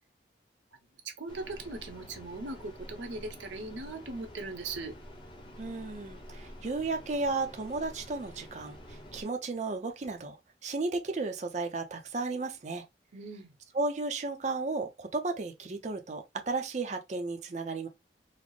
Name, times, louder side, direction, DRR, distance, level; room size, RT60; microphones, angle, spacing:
voice 1, 1.0-4.9 13.1-13.5, right 3 dB, 80° right, 0.8 m, -39 dB
sound 1, 1.3-9.2, equal, 25° left, 0.7 m, -48 dB
voice 2, 5.6-12.8 13.7-17.9, right 3 dB, 40° right, 0.5 m, -34 dB
4.0 x 2.0 x 3.0 m
head